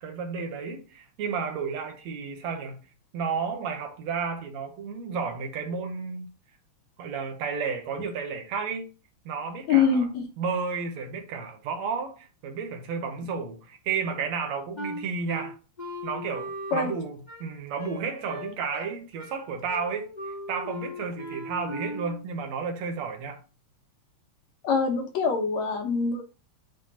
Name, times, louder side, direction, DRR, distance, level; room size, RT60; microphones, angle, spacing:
voice 1, 0.0-6.3 7.0-8.9 9.3-10.1 10.4-15.6 16.0-23.4, right 5 dB, 70° right, 2.1 m, -32 dB
voice 2, 9.7-10.2 16.7-16.9 24.6-26.2, left 5 dB, 70° left, 2.4 m, -24 dB
Wind instrument woodwind instrument, 14.8-22.2, left 1 dB, 20° left, 1.2 m, -38 dB
9.2 x 4.2 x 2.8 m
omnidirectional pair, 3.4 m